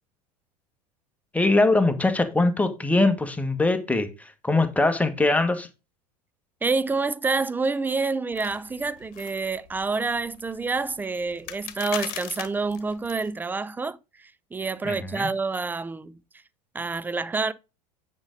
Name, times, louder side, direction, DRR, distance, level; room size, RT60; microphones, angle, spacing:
voice 1, 1.3-5.7 14.8-15.3, left 2 dB, 5° left, 1.5 m, -22 dB
voice 2, 6.6-16.2 16.7-17.5, right 4 dB, 10° right, 0.6 m, -28 dB
sound 1, 8.3-13.3, left 13 dB, 45° left, 1.5 m, -40 dB
9.6 x 5.3 x 3.9 m
figure-of-eight pair, 85°, 21 cm